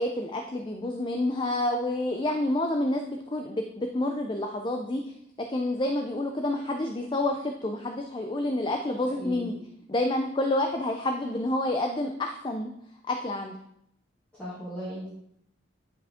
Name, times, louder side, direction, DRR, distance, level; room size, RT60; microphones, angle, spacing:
voice 1, 0.0-5.0 5.5-9.5 9.9-12.7 13.1-13.6, left 1 dB, 25° left, 4 dB, 0.4 m, -28 dB
voice 2, 9.2-9.5 14.4-15.1, equal, 5° left, -13 dB, 2.5 m, -36 dB
10.0 x 5.0 x 3.6 m, 0.73 s
head